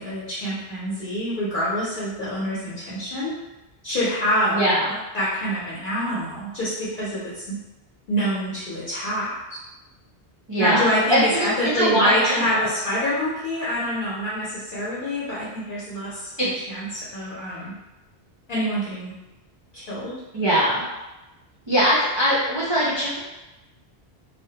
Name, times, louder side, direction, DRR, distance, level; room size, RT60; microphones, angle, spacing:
voice 1, 0.0-3.3 3.8-4.6 5.1-7.6 8.1-9.3 10.6-17.7 18.5-19.1 19.7-20.1, equal, 55° left, -8 dB, 0.8 m, -26 dB
voice 2, 4.5-4.9 10.5-11.5 11.7-12.4 16.4-16.5 20.3-20.8 21.7-23.2, equal, 45° right, -8 dB, 0.3 m, -21 dB
2.2 x 2.1 x 2.7 m, 1.0 s
omnidirectional pair, 1.1 m